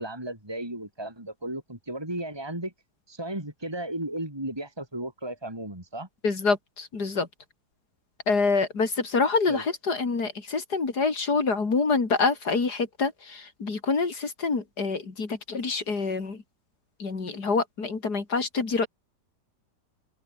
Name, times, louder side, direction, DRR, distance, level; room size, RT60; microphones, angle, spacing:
voice 1, 0.0-2.7 3.1-6.1 9.5-9.6, right 1 dB, 15° right, 4.0 m, -35 dB
voice 2, 6.2-7.3 8.3-16.4 17.0-18.9, left 4 dB, 70° left, 3.6 m, -26 dB
open air
omnidirectional pair, 1.8 m